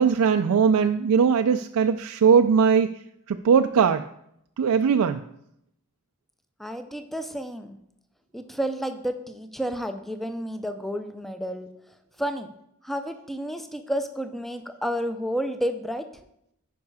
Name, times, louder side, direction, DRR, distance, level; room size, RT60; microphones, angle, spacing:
voice 1, 0.0-2.9 3.3-4.0 4.6-5.2, right 6 dB, 85° right, 7 dB, 0.4 m, -20 dB
voice 2, 6.6-7.8 8.3-11.7 12.2-12.5 12.8-16.1, equal, ahead, 8 dB, 0.5 m, -31 dB
9.5 x 5.3 x 4.8 m, 0.77 s
head